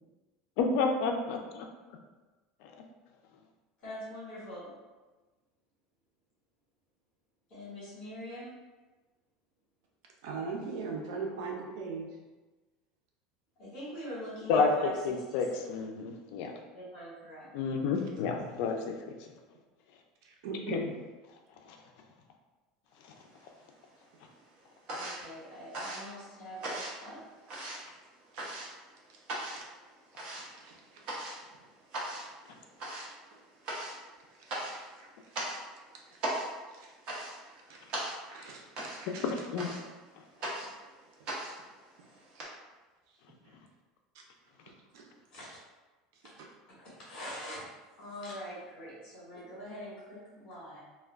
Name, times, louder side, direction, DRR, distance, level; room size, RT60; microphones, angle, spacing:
voice 1, 0.6-1.7 14.5-14.7 15.0-16.5 17.5-19.0 20.7-20.8 39.3-39.7, left 5 dB, 65° left, 3 dB, 0.4 m, -30 dB
voice 2, 3.8-4.7 7.5-8.5 13.6-14.9 15.3-15.4 16.7-17.5 24.9-27.2 45.3-45.5 46.7-47.6 48.0-50.8, equal, 45° left, -8 dB, 1.1 m, -43 dB
voice 3, 10.2-12.1 18.0-18.4 20.2-20.9 28.3-28.4 29.4-29.7 30.6-31.0 32.5-32.6 34.4-35.1 36.7-36.9 37.7-39.3 44.1-44.2 44.9-45.1, right 4 dB, 80° right, 0 dB, 0.5 m, -40 dB
sound 1, 23.1-23.9 24.2-42.4, right 1 dB, 45° right, 0.7 m, -40 dB
2.2 x 2.2 x 3.4 m, 1.2 s
cardioid pair, 150°, 2 cm